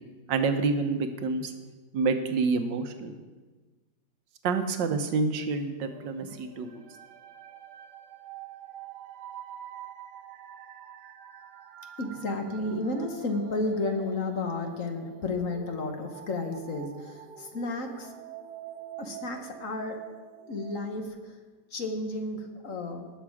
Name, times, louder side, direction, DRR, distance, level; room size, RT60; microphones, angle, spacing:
voice 1, 0.3-1.5 1.9-3.1 4.4-6.8, right 4 dB, 85° right, 7 dB, 1.6 m, -28 dB
sound 1, 5.8-21.1, right 10 dB, 70° right, 1.2 m, -46 dB
voice 2, 12.0-18.1 19.0-20.0 20.5-21.4 21.7-23.1, left 2 dB, 50° left, 4 dB, 1.4 m, -32 dB
18.5 x 6.8 x 4.8 m, 1.3 s
omnidirectional pair, 1.9 m